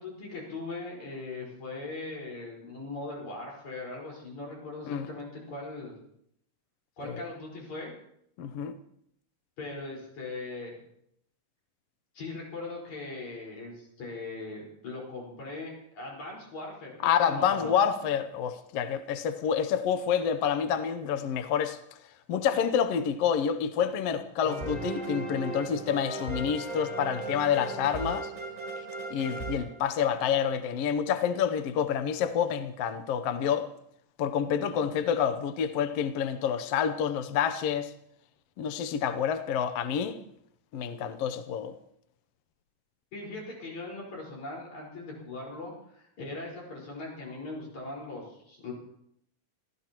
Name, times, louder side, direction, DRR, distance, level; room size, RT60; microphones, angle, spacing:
voice 1, 0.0-5.9 7.0-7.9 9.6-10.8 12.1-16.9 17.3-17.9 43.1-48.7, left 2 dB, 60° left, 6.2 m, -40 dB
voice 2, 8.4-8.8 17.0-21.8 22.3-28.3 29.1-33.7 34.2-37.9 38.6-40.2 40.7-41.7, left 8 dB, 75° left, 1.4 m, -28 dB
sound 1, 24.4-30.3, right 2 dB, 10° left, 3.7 m, -37 dB
27.5 x 15.0 x 3.0 m
omnidirectional pair, 3.8 m